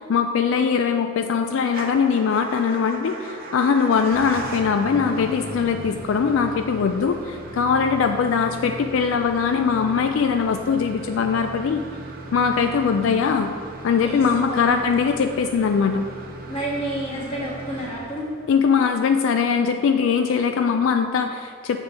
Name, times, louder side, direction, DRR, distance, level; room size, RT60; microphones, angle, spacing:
voice 1, 0.0-11.8 12.3-13.5 13.8-16.0 18.5-21.8, left 6 dB, 65° left, 6 dB, 0.3 m, -21 dB
Motor vehicle (road) / Engine starting / Idling, 1.7-18.6, right 1 dB, 45° right, 0.7 m, -38 dB
voice 2, 12.6-13.0 14.0-14.8 16.5-18.3, right 1 dB, 25° left, -6 dB, 1.5 m, -31 dB
7.2 x 4.0 x 4.9 m, 2.1 s
head